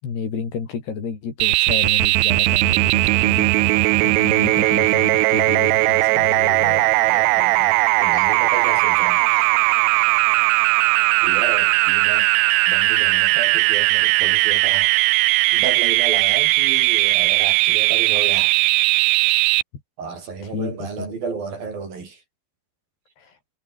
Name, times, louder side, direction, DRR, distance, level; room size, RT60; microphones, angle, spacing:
voice 1, 0.0-3.5 4.0-6.8 20.4-21.2 23.2-23.3, left 6 dB, 70° left, 6.8 m, -31 dB
sound 1, 1.4-19.6, right 22 dB, 85° right, 2.6 m, -18 dB
voice 2, 6.6-9.5 11.2-12.3 12.7-15.0 15.5-18.6 20.0-22.2, right 4 dB, 55° right, 7.1 m, -32 dB
omnidirectional pair, 4.9 m